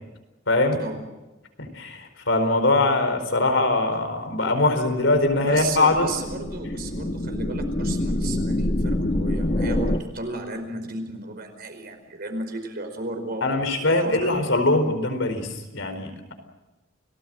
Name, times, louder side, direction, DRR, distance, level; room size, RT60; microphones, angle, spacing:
voice 1, 0.5-0.8 1.6-6.1 13.4-16.3, left 2 dB, 70° left, 7 dB, 4.6 m, -22 dB
sound 1, 5.1-10.0, left 1 dB, 35° left, 1.3 m, -26 dB
voice 2, 5.3-13.6 14.0-14.3, right 2 dB, 50° right, 6 dB, 5.0 m, -33 dB
29.5 x 19.0 x 7.8 m, 1.1 s
head